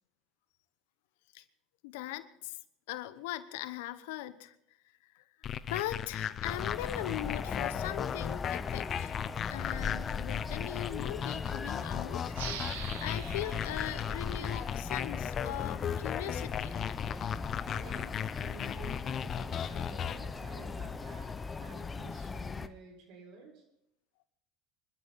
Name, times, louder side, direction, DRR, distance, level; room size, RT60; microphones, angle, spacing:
voice 1, 1.8-2.6 2.9-4.6 5.0-9.1 9.5-16.8, left 15 dB, 75° left, 14 dB, 1.0 m, -40 dB
sound 1, 5.4-20.2, left 9 dB, 40° left, 0.8 m, -37 dB
sound 2, 6.4-22.7, left 4 dB, 20° left, 1.0 m, -39 dB
sound 3, 12.3-15.6, right 8 dB, 85° right, 1.8 m, -45 dB
voice 2, 17.6-23.6, right 3 dB, 60° right, 3 dB, 6.5 m, -51 dB
25.5 x 13.0 x 4.2 m, 0.78 s
hypercardioid pair, 85°, 0 cm